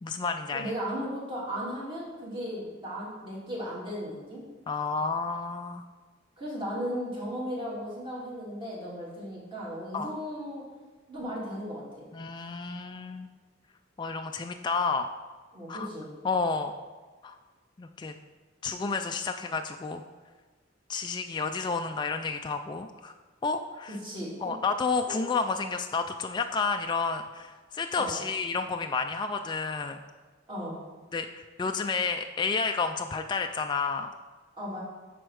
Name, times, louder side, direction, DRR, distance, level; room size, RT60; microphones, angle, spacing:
voice 1, 0.0-0.7 4.7-5.8 9.9-10.1 12.1-13.3 14.0-15.1 15.7-15.9 16.2-16.7 17.2-17.4 17.8-18.1 18.6-20.0 20.9-23.1 23.4-24.0 24.4-30.0 31.1-34.1, left 4 dB, 25° left, 5 dB, 0.3 m, -30 dB
voice 2, 0.5-4.4 6.4-10.6 11.1-12.1 15.5-16.1 23.9-24.6 25.1-25.2 28.0-28.1 30.5-30.8 34.6-34.8, equal, 25° right, -5 dB, 2.4 m, -36 dB
7.9 x 4.3 x 6.3 m, 1.3 s
head